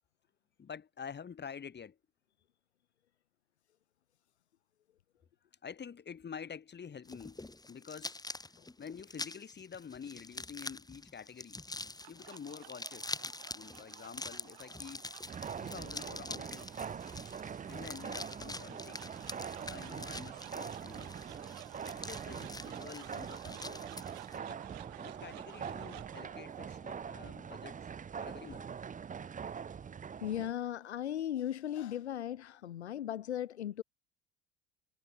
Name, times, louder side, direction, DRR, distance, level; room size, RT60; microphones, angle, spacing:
voice 1, 0.6-2.0 5.6-7.4 7.7-8.2 8.8-11.6 12.1-13.1 13.5-15.0 15.6-16.7 17.6-19.0 19.7-21.2 21.9-23.8 24.4-24.6 25.0-27.9 28.2-28.7, left 7 dB, 30° left, 6.7 m, -48 dB
sound 1, 7.0-24.4, left 2 dB, 10° left, 7.4 m, -46 dB
sound 2, 11.7-30.0, right 23 dB, 65° right, 1.9 m, -53 dB
sound 3, 15.2-30.5, right 7 dB, 25° right, 1.1 m, -44 dB
voice 2, 30.2-33.8, left 11 dB, 80° left, 2.2 m, -37 dB
figure-of-eight pair, 65°, 33 cm